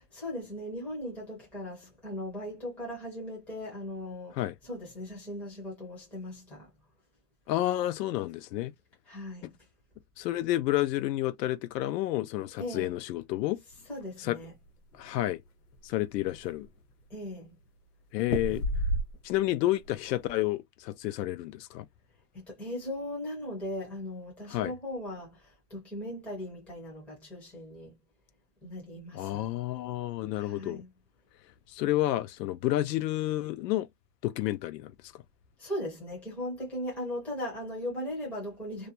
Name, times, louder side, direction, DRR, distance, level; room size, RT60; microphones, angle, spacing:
voice 1, 0.0-6.7 9.1-9.5 12.6-12.9 13.9-14.5 17.1-17.5 22.3-28.0 28.6-29.5 30.3-30.9 35.6-38.9, left 1 dB, 5° left, 0.5 m, -38 dB
voice 2, 7.5-8.7 10.2-13.6 14.2-14.4 15.0-15.4 15.8-16.7 18.1-18.6 19.2-21.9 24.5-24.7 29.1-30.8 31.7-33.9 34.2-35.2, left 15 dB, 80° left, 0.6 m, -30 dB
sound 1, 14.4-15.3 15.7-15.8 16.1-16.8 18.2-19.5 19.8-20.3, equal, 50° left, 1.2 m, -32 dB
2.5 x 2.1 x 2.8 m
supercardioid pair, 170°, 48 cm